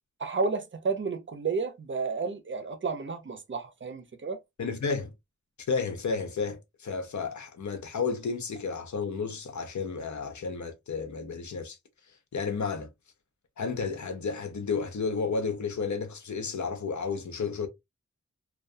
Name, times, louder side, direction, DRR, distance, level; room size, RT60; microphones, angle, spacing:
voice 1, 0.2-4.4, right 4 dB, 40° right, 0.5 m, -31 dB
voice 2, 4.6-5.1 5.7-11.8 12.3-12.9 13.6-17.7, left 5 dB, 70° left, 0.6 m, -32 dB
2.3 x 2.2 x 2.4 m
wide cardioid pair, 80°, 29 cm